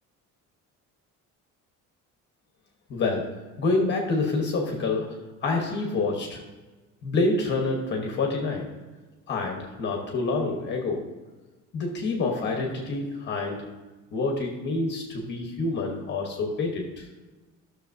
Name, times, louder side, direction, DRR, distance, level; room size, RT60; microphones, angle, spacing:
voice 1, 2.9-6.4 7.0-8.7 9.3-11.1 11.7-13.7 14.1-17.1, left 3 dB, 35° left, 1 dB, 1.1 m, -27 dB
13.5 x 6.5 x 2.7 m, 1.2 s
cardioid pair, 180°, 32 cm